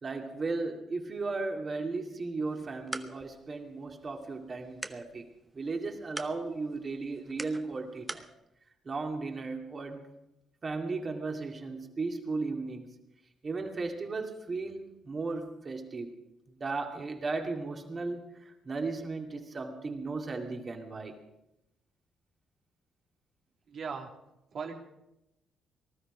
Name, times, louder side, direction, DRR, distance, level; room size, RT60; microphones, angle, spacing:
voice 1, 0.0-5.3 5.5-8.3 8.8-10.1 10.6-12.9 13.4-16.1 16.6-21.2, right 3 dB, 35° right, 3 dB, 2.3 m, -35 dB
sound 1, 2.5-8.3, right 2 dB, 20° right, 0.9 m, -45 dB
voice 2, 23.7-24.1 24.5-24.7, right 5 dB, 55° right, 2 dB, 2.4 m, -37 dB
19.0 x 12.5 x 5.0 m, 0.89 s
cardioid pair, 90°, 0 cm